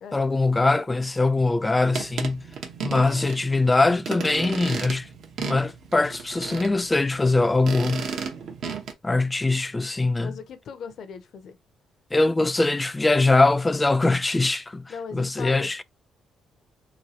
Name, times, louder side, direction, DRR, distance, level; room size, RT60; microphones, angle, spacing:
voice 1, 0.1-2.4 2.8-5.1 5.4-8.1 9.0-10.3 12.1-15.8, left 2 dB, 20° left, 0.3 m, -22 dB
sound 1, 1.8-8.9, right 6 dB, 70° right, 0.8 m, -34 dB
voice 2, 10.2-11.6 14.9-15.8, left 6 dB, 65° left, 0.5 m, -39 dB
3.0 x 2.3 x 2.7 m
cardioid pair, 90°, 0 cm